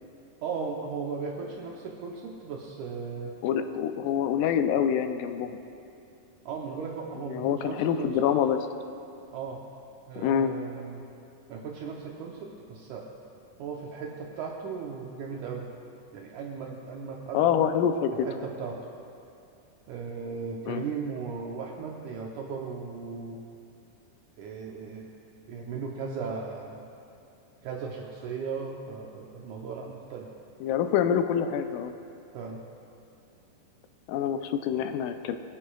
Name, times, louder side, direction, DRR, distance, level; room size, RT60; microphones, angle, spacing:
voice 1, 0.4-3.4 6.5-8.3 9.3-9.6 10.1-11.1 11.5-13.1 13.6-15.7 16.1-17.5 18.1-18.9 19.9-23.4 24.4-25.1 25.5-26.9 27.6-30.3 32.3-32.6, right 5 dB, 75° right, -1 dB, 2.1 m, -37 dB
voice 2, 3.4-5.6 7.3-8.7 10.2-10.5 17.3-18.3 20.7-20.9 30.6-31.9 34.1-35.4, left 8 dB, 85° left, 8 dB, 2.2 m, -26 dB
23.5 x 10.0 x 2.3 m, 2.6 s
omnidirectional pair, 3.8 m